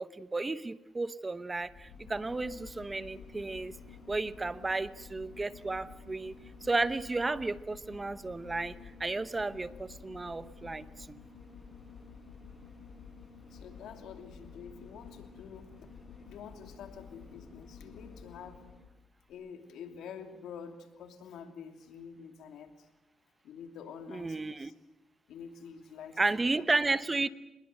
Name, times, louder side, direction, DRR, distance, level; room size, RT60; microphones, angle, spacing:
voice 1, 0.0-3.7 4.1-6.3 6.6-8.7 9.0-11.2 24.1-24.7 26.2-27.3, right 3 dB, 20° right, 15 dB, 0.9 m, -33 dB
sound 1, 1.5-18.9 19.3-19.4, left 5 dB, 35° left, 7.2 m, -51 dB
voice 2, 13.5-15.9 16.2-18.6 19.3-22.9 23.4-24.7 25.3-26.2 26.6-26.7, left 7 dB, 80° left, 7 dB, 2.8 m, -47 dB
25.5 x 21.0 x 7.9 m, 0.98 s
cardioid pair, 90°, 0 cm